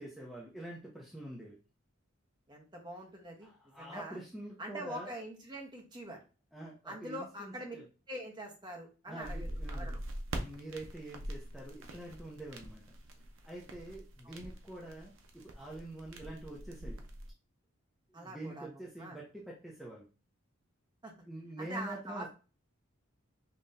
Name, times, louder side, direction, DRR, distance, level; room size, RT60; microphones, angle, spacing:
voice 1, 0.0-1.6 3.4-5.1 6.5-7.9 9.1-10.0 10.3-12.8 13.4-17.0 18.1-20.1 21.2-22.3, right 1 dB, ahead, -5 dB, 0.7 m, -46 dB
voice 2, 2.5-3.5 3.8-4.2 4.6-6.2 6.8-7.8 8.1-10.0 14.2-14.4 18.1-19.2 21.0-21.1 21.6-22.3, right 1 dB, 20° right, 0 dB, 1.0 m, -44 dB
sound 1, 9.2-17.3, right 1 dB, 70° right, 0.7 m, -43 dB
5.5 x 3.0 x 2.6 m, 0.33 s
head